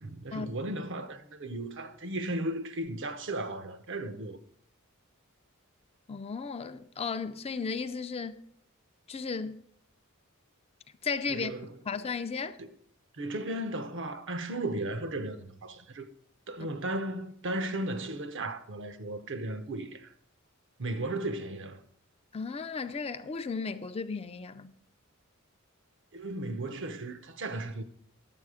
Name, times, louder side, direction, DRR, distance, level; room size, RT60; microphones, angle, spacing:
voice 1, 0.0-4.4 11.3-11.7 12.6-12.7 13.1-16.1 16.5-20.1 20.8-21.8 26.1-27.8, right 1 dB, 60° right, 0.8 m, -35 dB
voice 2, 6.1-8.4 9.1-9.6 11.0-11.5 11.9-12.6 16.6-16.7 22.3-24.7, left 5 dB, 30° left, 0.4 m, -35 dB
10.5 x 7.4 x 4.9 m
head